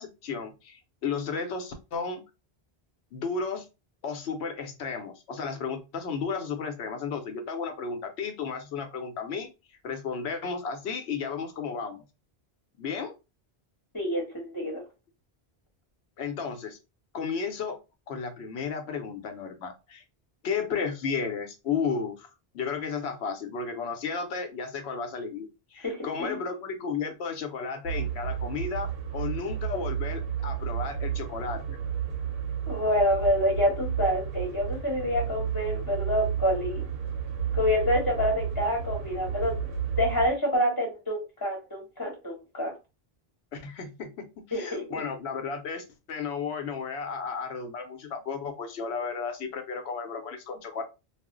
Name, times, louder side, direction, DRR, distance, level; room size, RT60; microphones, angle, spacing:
voice 1, 0.0-2.2 3.1-3.7 4.0-9.5 9.8-12.0 12.8-13.1 16.2-16.8 17.1-17.8 18.1-20.0 20.4-22.3 22.5-31.8 43.5-50.8, left 5 dB, 80° left, 6 dB, 0.9 m, -33 dB
voice 2, 13.9-14.8 25.8-26.4 32.7-36.8 37.5-39.6 40.0-42.7 44.5-44.8, left 1 dB, 20° left, -1 dB, 0.8 m, -27 dB
sound 1, 27.8-40.3, right 8 dB, 70° right, 0.9 m, -32 dB
2.4 x 2.0 x 3.6 m, 0.27 s
omnidirectional pair, 1.1 m